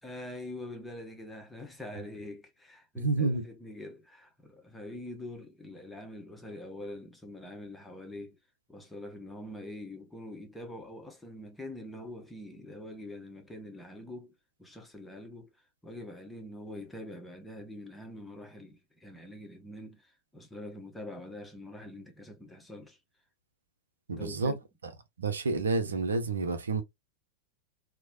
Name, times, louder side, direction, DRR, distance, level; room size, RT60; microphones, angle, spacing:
voice 1, 0.0-8.4 8.7-14.3 14.6-15.5 15.8-23.0 24.2-24.6, left 1 dB, 5° left, 0.8 m, -44 dB
voice 2, 3.0-3.4 24.1-24.5 25.2-26.8, right 3 dB, 70° right, 0.5 m, -29 dB
3.0 x 2.0 x 2.4 m
figure-of-eight pair, 90°, 0 cm